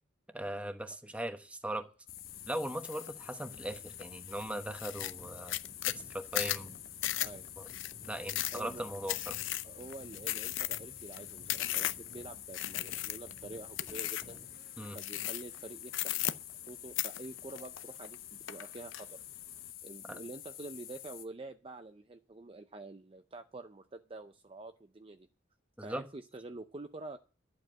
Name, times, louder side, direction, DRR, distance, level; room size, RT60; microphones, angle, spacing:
voice 1, 0.3-1.9 2.5-5.6 5.8-6.8 7.6-7.7 8.1-9.4 14.8-15.0 20.1-20.2 25.8-26.0, right 1 dB, 5° right, 1.0 m, -39 dB
sound 1, 2.1-21.3, left 11 dB, 50° left, 1.1 m, -48 dB
sound 2, 2.8-3.1 3.5-4.0 4.4-4.5 4.7-12.1 12.5-13.4 13.8-14.4 15.0-15.6 15.9-16.7 17.0-18.1 18.5-19.0, left 14 dB, 80° left, 0.6 m, -35 dB
sound 3, 5.0-14.6, equal, 10° left, 2.2 m, -57 dB
voice 2, 8.5-8.8 9.6-14.4 14.9-16.4 16.6-19.2 19.8-25.3 25.8-27.2, right 2 dB, 30° right, 0.5 m, -47 dB
11.5 x 7.8 x 7.5 m
head